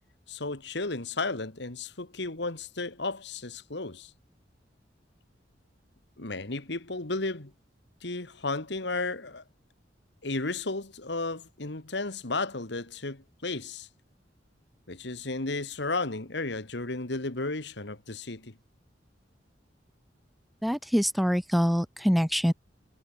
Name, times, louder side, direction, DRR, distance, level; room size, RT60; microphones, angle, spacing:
voice 1, 0.3-4.1 6.2-7.5 8.0-9.4 10.2-13.9 14.9-18.5, left 3 dB, 70° left, 2.1 m, -33 dB
voice 2, 20.6-22.5, equal, ahead, 0.5 m, -25 dB
head